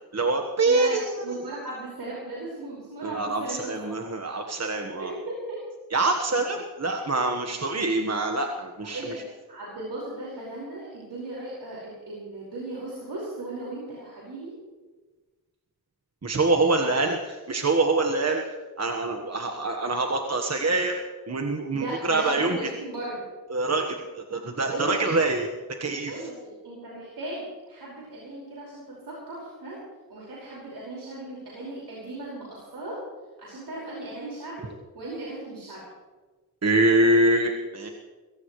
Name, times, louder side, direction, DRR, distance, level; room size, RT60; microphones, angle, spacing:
voice 1, 0.1-1.0 3.0-5.1 5.9-9.1 16.2-18.4 18.8-21.0 21.3-22.6 23.5-25.5 25.8-26.1 36.6-37.9, right 2 dB, 40° right, 3 dB, 1.4 m, -25 dB
voice 2, 0.6-4.0 5.0-5.6 8.8-9.2 9.5-14.5 16.8-17.0 21.7-23.2 24.7-25.2 26.1-29.8 30.1-33.0 33.4-34.7 34.9-35.8, right 2 dB, 85° right, -6 dB, 5.3 m, -37 dB
22.5 x 17.0 x 3.2 m, 1.3 s
wide cardioid pair, 85°, 38 cm